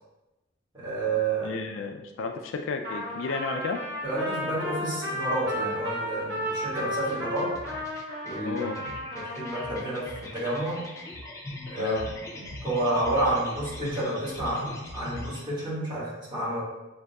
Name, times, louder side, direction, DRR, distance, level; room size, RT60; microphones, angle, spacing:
voice 1, 0.7-1.6 4.0-7.6 8.2-10.9 11.7-12.0 12.4-16.6, right 2 dB, 25° right, -8 dB, 1.5 m, -30 dB
voice 2, 1.4-3.8 8.4-8.8 11.8-12.1, left 4 dB, 75° left, 4 dB, 0.3 m, -32 dB
Trumpet, 2.8-9.9, left 1 dB, 60° right, 1.4 m, -33 dB
sound 1, 6.7-15.4, left 1 dB, 15° left, 0.5 m, -41 dB
6.3 x 2.7 x 2.3 m, 1.0 s
head